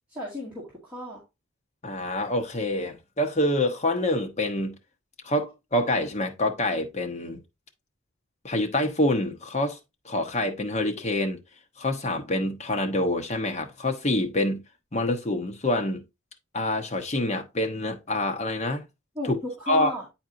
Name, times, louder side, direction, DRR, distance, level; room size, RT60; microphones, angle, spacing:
voice 1, 0.1-1.2 19.2-20.0, left 2 dB, 10° right, 1.8 m, -34 dB
voice 2, 1.8-4.8 5.2-7.4 8.4-9.8 10.0-11.4 11.8-14.6 14.9-16.0 16.5-18.8 19.3-19.4 19.7-19.9, left 1 dB, 30° left, 0.9 m, -26 dB
8.6 x 4.3 x 2.6 m
head